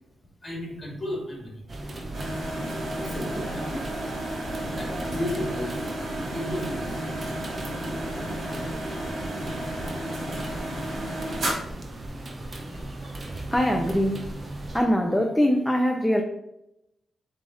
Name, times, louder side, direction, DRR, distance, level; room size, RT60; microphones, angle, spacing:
voice 1, 0.4-1.7 3.0-3.8 4.7-7.1 8.1-8.5, left 1 dB, 20° left, -2 dB, 1.9 m, -34 dB
sound 1, 1.7-14.8, right 1 dB, 30° right, 0.8 m, -37 dB
sound 2, 2.1-11.5, right 1 dB, 55° right, 2.4 m, -33 dB
voice 2, 13.2-14.3 14.7-16.2, equal, 5° left, 2 dB, 0.5 m, -23 dB
7.4 x 3.3 x 3.8 m, 0.86 s
wide cardioid pair, 150°, 0 cm